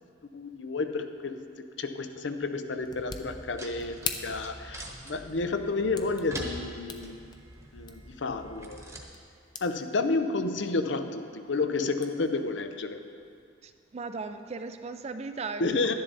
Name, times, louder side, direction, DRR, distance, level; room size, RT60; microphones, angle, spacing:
voice 1, 0.3-1.5 1.8-7.2 7.7-9.1 9.6-13.0 15.6-15.9, left 3 dB, 70° left, 8 dB, 0.6 m, -31 dB
sound 1, 2.2-9.8 10.2-10.7 11.0-13.5, left 5 dB, 25° left, 0.6 m, -43 dB
sound 2, 2.8-9.1, right 1 dB, 15° right, 1.1 m, -44 dB
voice 2, 13.6-15.9, right 4 dB, 35° right, 8 dB, 0.4 m, -37 dB
11.5 x 10.5 x 4.0 m, 2.3 s
head